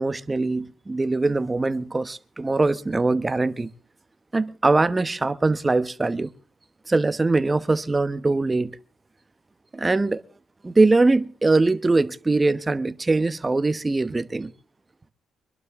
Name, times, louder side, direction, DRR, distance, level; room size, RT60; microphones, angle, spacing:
voice 1, 0.0-3.7 4.3-6.3 6.9-8.8 9.7-10.2 10.6-14.5, right 3 dB, 20° right, 1.0 m, -22 dB
24.0 x 12.0 x 3.6 m
cardioid pair, 75°, 0 cm